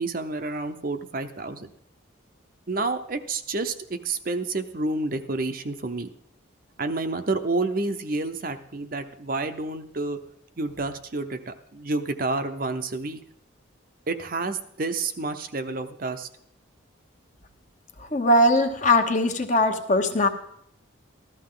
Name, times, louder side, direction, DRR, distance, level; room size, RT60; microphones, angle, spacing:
voice 1, 0.0-1.7 2.7-6.1 6.8-10.2 10.6-13.2 14.1-16.3, right 3 dB, 45° right, 8 dB, 0.7 m, -29 dB
voice 2, 18.0-20.3, left 1 dB, 35° left, 6 dB, 1.1 m, -20 dB
14.5 x 13.0 x 3.8 m, 0.70 s
head